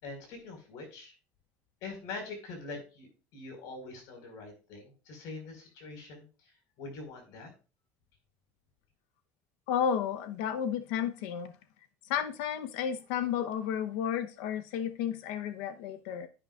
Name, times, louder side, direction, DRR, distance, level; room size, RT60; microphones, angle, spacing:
voice 1, 0.0-1.1 1.8-7.5, left 3 dB, 60° left, 4 dB, 4.7 m, -44 dB
voice 2, 9.7-11.5 12.1-16.3, left 8 dB, 75° left, 9 dB, 0.8 m, -32 dB
10.5 x 10.0 x 2.4 m, 0.33 s
cardioid pair, 160°, 7 cm